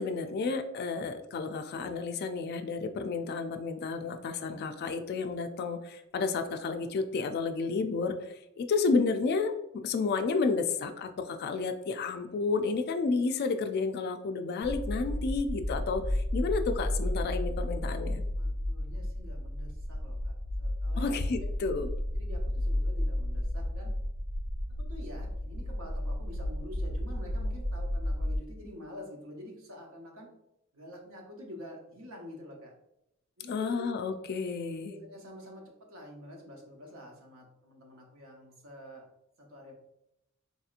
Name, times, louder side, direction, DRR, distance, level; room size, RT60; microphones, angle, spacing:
voice 1, 0.0-9.5 9.8-18.2 21.0-21.9 33.5-34.9, left 4 dB, 50° left, 7 dB, 0.3 m, -31 dB
sound 1, 14.6-28.4, left 1 dB, 30° right, 0.7 m, -32 dB
voice 2, 18.3-21.5 22.2-23.9 24.8-30.3 30.7-32.7 33.4-33.8 34.8-39.0 39.4-39.7, left 1 dB, 70° right, 0 dB, 0.9 m, -47 dB
4.1 x 2.8 x 2.4 m, 0.83 s
head